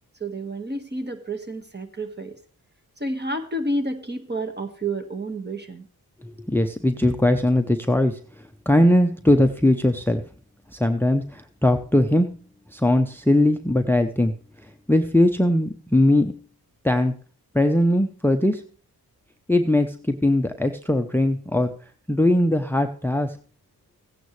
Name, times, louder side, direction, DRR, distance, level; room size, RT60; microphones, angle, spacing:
voice 1, 0.2-2.4 3.0-5.9, right 1 dB, 25° right, 6 dB, 1.7 m, -30 dB
voice 2, 6.2-8.2 8.7-10.2 10.7-12.3 12.7-14.3 14.9-16.4 16.8-17.1 17.5-18.6 19.5-21.7 22.1-23.4, left 1 dB, 5° left, 8 dB, 0.8 m, -20 dB
15.5 x 9.2 x 3.3 m, 0.39 s
cardioid pair, 50°, 39 cm